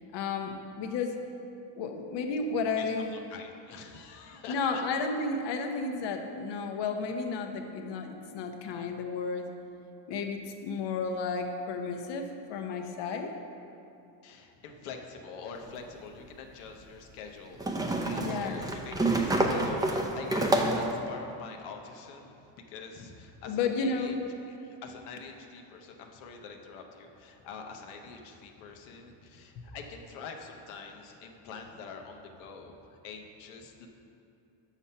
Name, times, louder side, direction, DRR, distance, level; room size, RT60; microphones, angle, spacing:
voice 1, 0.1-1.1 1.8-3.1 4.5-9.5 10.1-13.3 18.2-18.6 23.5-24.2, left 4 dB, 60° left, 5 dB, 1.0 m, -32 dB
voice 2, 2.8-4.8 14.2-22.4 22.7-24.2 24.5-33.9, left 5 dB, 85° left, 3 dB, 1.0 m, -45 dB
sound 1, 15.6-15.7 17.6-21.0, right 2 dB, 10° right, 0.5 m, -28 dB
7.1 x 5.9 x 5.5 m, 2.7 s
cardioid pair, 115°, 48 cm